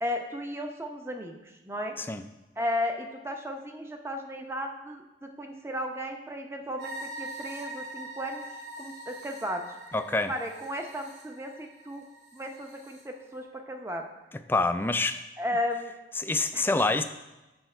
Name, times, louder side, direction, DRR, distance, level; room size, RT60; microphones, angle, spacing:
voice 1, 0.0-1.4 1.6-2.0 2.6-8.5 8.8-9.6 10.3-12.0 12.3-14.1 15.4-15.9 16.5-16.6, left 1 dB, 15° right, 3 dB, 0.7 m, -34 dB
sound 1, 6.8-13.0, right 1 dB, 75° right, 2.5 m, -43 dB
voice 2, 9.9-10.3 14.5-15.2 16.2-17.0, left 3 dB, 10° left, 9 dB, 0.3 m, -26 dB
8.0 x 6.2 x 4.4 m, 1.0 s
head